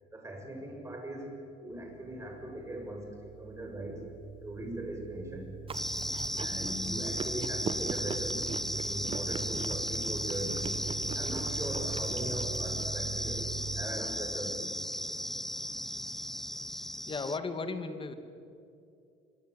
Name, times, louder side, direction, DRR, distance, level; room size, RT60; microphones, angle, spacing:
voice 1, 0.1-4.0 4.4-5.5 6.4-8.4 8.8-10.7 11.1-13.5 13.7-14.6, right 1 dB, 15° right, 2 dB, 7.4 m, -40 dB
sound 1, 1.7-13.9, right 7 dB, 55° right, 2.2 m, -43 dB
sound 2, 5.7-17.4, equal, ahead, 0.8 m, -35 dB
Chewing mastication, 5.7-12.9, right 5 dB, 30° right, 1.4 m, -41 dB
voice 2, 16.7-18.1, left 4 dB, 30° left, 9 dB, 2.5 m, -36 dB
25.0 x 25.0 x 8.4 m, 2.6 s
cardioid pair, 110°, 17 cm